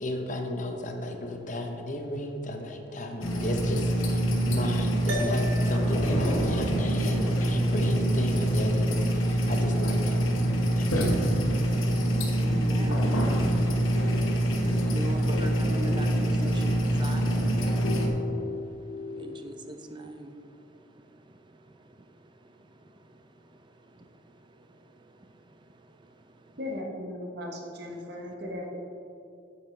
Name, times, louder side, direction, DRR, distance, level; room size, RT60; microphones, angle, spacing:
voice 1, 0.0-10.2 10.8-11.2, left 1 dB, 40° left, 3 dB, 0.8 m, -34 dB
sound 1, 3.2-18.1, right 1 dB, 90° left, 1.2 m, -25 dB
sound 2, 5.1-9.7, equal, 80° right, 1.2 m, -40 dB
voice 2, 12.4-13.1 14.7-17.2 19.2-20.3, right 1 dB, 25° right, 6 dB, 0.5 m, -39 dB
sound 3, 13.9-19.5, left 4 dB, 70° left, 0.5 m, -39 dB
voice 3, 26.6-28.8, left 1 dB, 55° right, 0 dB, 1.0 m, -37 dB
8.7 x 8.7 x 3.3 m, 2.6 s
head